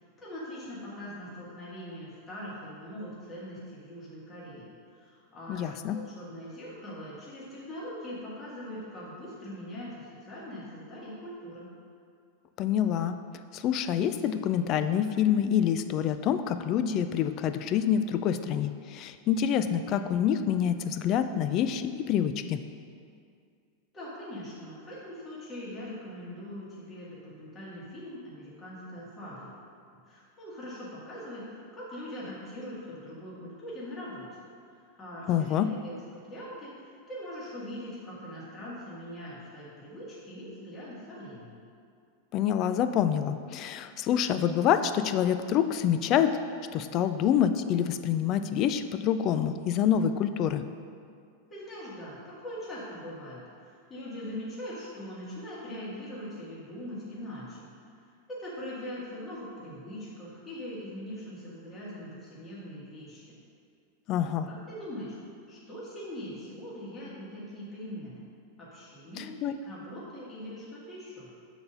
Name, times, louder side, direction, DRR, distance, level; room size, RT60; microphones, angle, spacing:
voice 1, 0.2-11.7 23.9-29.5 30.1-34.3 35.0-36.8 37.1-41.7 51.5-57.7 58.3-63.3 64.5-65.2 65.5-68.2 68.7-69.4 69.6-71.3, equal, 20° left, -8 dB, 1.7 m, -42 dB
voice 2, 5.5-6.0 12.6-13.2 13.5-22.6 35.3-35.7 42.3-46.4 46.7-50.6 64.1-64.5 69.2-69.6, left 9 dB, 35° left, 10 dB, 0.3 m, -27 dB
6.8 x 4.1 x 5.5 m, 2.3 s
supercardioid pair, 150°, 0 cm